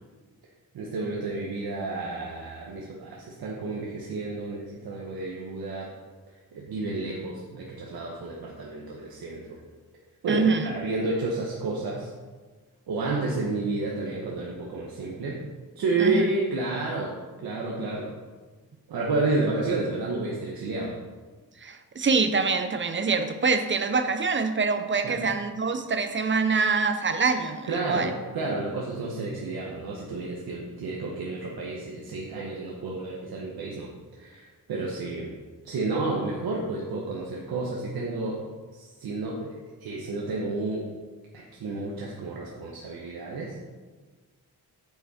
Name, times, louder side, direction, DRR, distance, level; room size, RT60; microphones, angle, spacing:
voice 1, 0.7-5.9 6.5-9.6 10.2-12.1 12.9-15.4 15.7-17.2 17.4-18.1 18.9-20.9 25.0-25.2 27.7-35.3 35.6-38.4 38.7-40.9 41.3-43.5, right 3 dB, 85° right, -2 dB, 1.2 m, -31 dB
voice 2, 10.3-10.7 16.0-16.2 21.6-28.1, right 4 dB, 30° right, 8 dB, 0.7 m, -25 dB
8.6 x 6.0 x 4.2 m, 1.4 s
cardioid pair, 110°, 36 cm